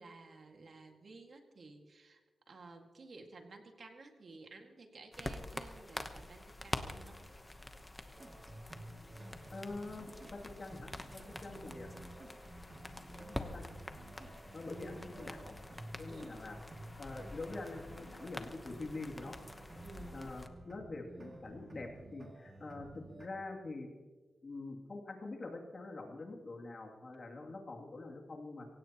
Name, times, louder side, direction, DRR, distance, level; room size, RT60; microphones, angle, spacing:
voice 1, 0.0-2.2 2.5-7.2 11.4-11.9 16.1-16.4 19.8-20.2, right 3 dB, 50° right, 3 dB, 2.0 m, -54 dB
sound 1, 5.1-20.5, left 1 dB, 15° left, 1.0 m, -47 dB
sound 2, 8.1-23.3, right 1 dB, 35° right, 2.5 m, -53 dB
voice 2, 9.5-12.0 13.2-13.7 14.5-15.5 16.0-16.6 17.0-19.4 20.1-22.9 23.2-23.9 24.4-28.7, left 2 dB, 45° left, 1 dB, 2.7 m, -45 dB
26.0 x 16.5 x 3.0 m, 1.4 s
wide cardioid pair, 115°, 0 cm